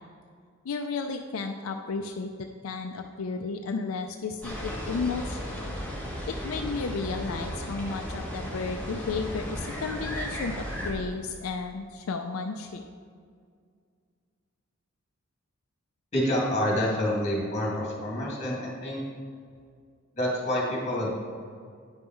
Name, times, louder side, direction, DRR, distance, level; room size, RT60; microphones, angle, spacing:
voice 1, 0.6-5.4 6.3-12.8, left 4 dB, 80° left, 4 dB, 0.4 m, -33 dB
sound 1, 4.4-10.9, equal, 5° left, 1.5 m, -35 dB
voice 2, 16.1-19.0 20.2-21.1, left 1 dB, 35° left, -4 dB, 2.2 m, -27 dB
9.7 x 5.4 x 4.5 m, 2.1 s
head